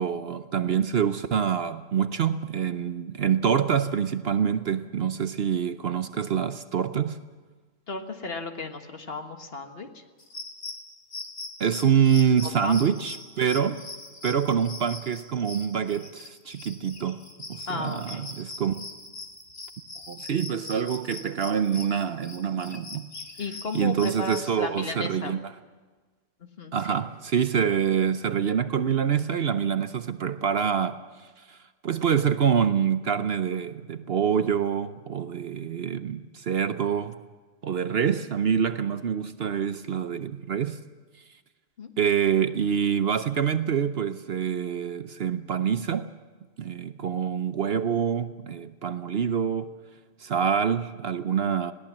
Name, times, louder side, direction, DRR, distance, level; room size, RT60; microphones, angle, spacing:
voice 1, 0.0-7.2 11.6-13.8 14.2-17.2 17.5-18.7 20.1-23.1 23.7-25.4 26.7-31.0 31.5-31.6 31.8-37.1 37.6-40.8 42.0-46.1 46.6-49.7 50.2-51.7, right 7 dB, 55° right, 0.9 m, -26 dB
voice 2, 7.9-10.0 12.4-12.8 17.7-18.3 23.4-25.4 26.4-27.0 41.8-41.9, left 3 dB, 50° left, 1.8 m, -35 dB
sound 1, 10.2-24.5, left 3 dB, 70° left, 2.5 m, -42 dB
21.0 x 17.0 x 7.4 m
omnidirectional pair, 1.3 m